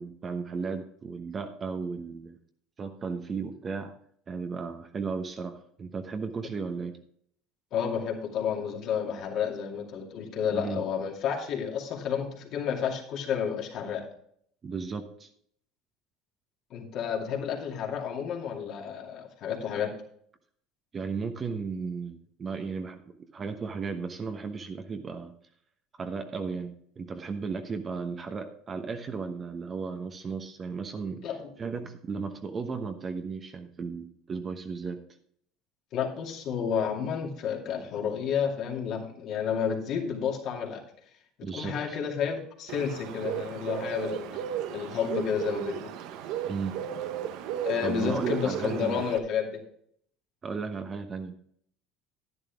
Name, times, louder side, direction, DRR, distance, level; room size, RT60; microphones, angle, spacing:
voice 1, 0.0-2.4 2.8-3.9 4.3-7.0 10.5-10.8 14.6-15.3 20.9-23.0 23.3-25.3 26.0-31.2 31.6-35.0 41.4-42.0 46.5-46.8 47.8-49.0 50.4-51.4, right 5 dB, 30° right, 6 dB, 1.0 m, -35 dB
voice 2, 7.7-14.1 16.7-19.9 31.2-31.5 35.9-40.8 41.5-44.3 44.7-45.9 47.6-49.6, left 7 dB, 55° left, 0 dB, 2.5 m, -31 dB
Bird, 42.7-49.2, right 10 dB, 70° right, 0.8 m, -35 dB
11.0 x 10.0 x 3.5 m, 0.65 s
supercardioid pair, 90°, 0 cm